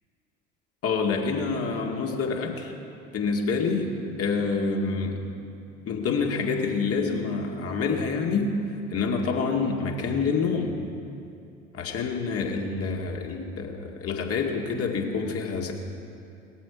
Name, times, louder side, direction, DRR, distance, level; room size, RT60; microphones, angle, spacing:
voice 1, 0.8-2.7 3.1-5.3 5.9-8.6 8.9-10.8 11.7-15.7, left 4 dB, 35° left, 1 dB, 2.1 m, -27 dB
19.0 x 13.5 x 4.8 m, 2.7 s
figure-of-eight pair, 65°, 38 cm